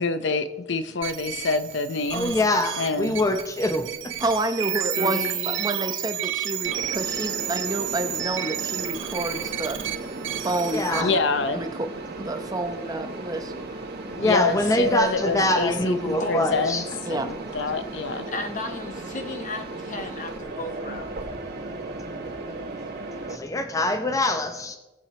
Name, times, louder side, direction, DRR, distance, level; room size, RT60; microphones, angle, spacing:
voice 1, 0.0-2.4 2.8-3.2 11.0-11.6 14.2-18.3, left 3 dB, 65° left, 11 dB, 0.6 m, -26 dB
sound 1, 1.0-11.0, right 11 dB, 80° right, 1.2 m, -31 dB
voice 2, 2.1-4.1 10.7-11.1 14.2-16.9 23.3-24.8, left 1 dB, 15° left, 6 dB, 0.6 m, -24 dB
voice 3, 4.2-9.8 10.4-11.2 11.5-11.9 12.2-13.5 17.1-17.3, right 2 dB, 20° right, 6 dB, 0.8 m, -29 dB
voice 4, 4.9-5.7 16.2-16.6 18.1-21.2, left 2 dB, 40° left, 6 dB, 1.1 m, -34 dB
Mechanisms, 6.6-23.4, right 2 dB, 55° right, 2.0 m, -36 dB
18.5 x 7.2 x 4.3 m, 1.1 s
head